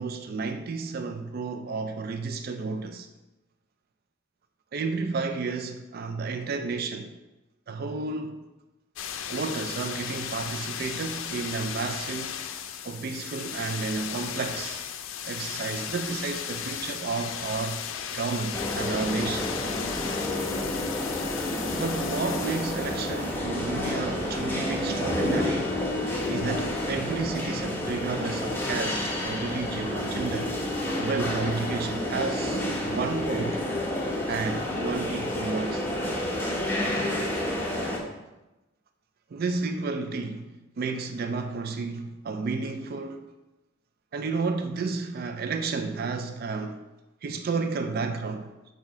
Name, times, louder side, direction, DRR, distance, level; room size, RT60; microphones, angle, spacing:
voice 1, 0.0-3.1 4.7-7.1 7.7-8.4 9.3-12.4 12.8-14.8 15.2-19.5 21.7-25.8 26.3-30.5 31.0-33.6 34.3-35.9 39.3-43.2 44.1-46.8 47.2-48.5, right 4 dB, 50° right, 0.4 m, -31 dB
sound 1, 9.0-23.8 24.4-26.7, left 7 dB, 85° left, 0.5 m, -36 dB
sound 2, 18.5-38.0, left 1 dB, 10° left, 0.9 m, -30 dB
7.3 x 2.7 x 4.8 m
head